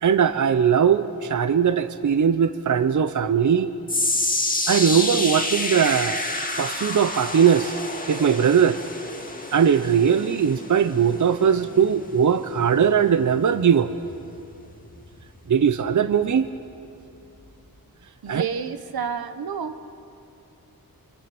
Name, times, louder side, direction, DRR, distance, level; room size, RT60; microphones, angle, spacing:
voice 1, 0.0-3.7 4.7-6.3 6.6-7.8 8.1-8.8 9.5-13.9 15.5-16.5 18.3-18.4, right 7 dB, 55° right, 11 dB, 0.8 m, -20 dB
sound 1, 3.9-16.2 16.5-16.9 17.5-17.6, left 2 dB, 25° left, 1.9 m, -30 dB
voice 2, 18.2-19.9, right 7 dB, 85° right, 9 dB, 1.2 m, -30 dB
28.0 x 26.0 x 6.1 m, 2.8 s
wide cardioid pair, 105°, 36 cm